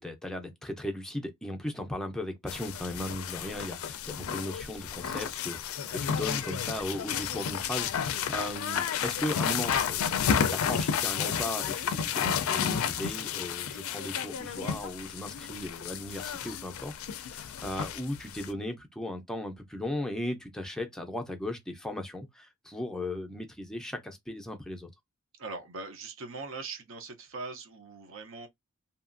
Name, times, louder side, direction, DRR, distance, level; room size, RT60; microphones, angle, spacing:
voice 1, 0.0-10.0 10.5-24.9, left 1 dB, 5° left, 0.5 m, -37 dB
sound 1, 2.5-18.5, left 8 dB, 70° left, 0.4 m, -32 dB
voice 2, 25.4-28.5, right 3 dB, 65° right, 0.7 m, -41 dB
2.8 x 2.4 x 2.5 m
head